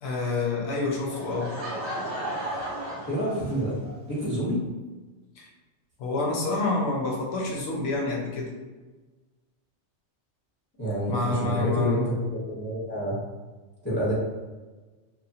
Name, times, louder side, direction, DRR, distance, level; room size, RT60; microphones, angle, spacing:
voice 1, 0.0-1.5 5.4-5.5 6.0-8.5 11.1-12.0, left 3 dB, 65° left, -1 dB, 0.8 m, -28 dB
Laughter / Crowd, 1.1-3.9, right 1 dB, 30° right, 0.7 m, -34 dB
voice 2, 3.1-3.8 4.1-4.6 10.8-13.2 13.8-14.1, equal, 10° left, -7 dB, 0.8 m, -28 dB
2.9 x 2.1 x 2.7 m, 1.3 s
omnidirectional pair, 1.2 m